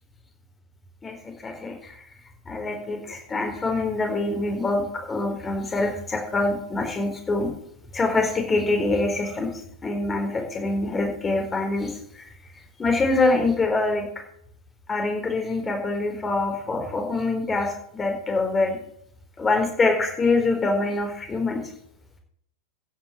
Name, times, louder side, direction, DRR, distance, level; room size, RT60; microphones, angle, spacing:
voice 1, 1.0-2.0 2.5-7.5 7.9-9.5 9.8-12.2 12.8-14.0 14.9-18.8 19.4-21.6, left 3 dB, 15° left, 2 dB, 4.3 m, -25 dB
15.5 x 6.1 x 8.0 m, 0.67 s
figure-of-eight pair, 90°, 0 cm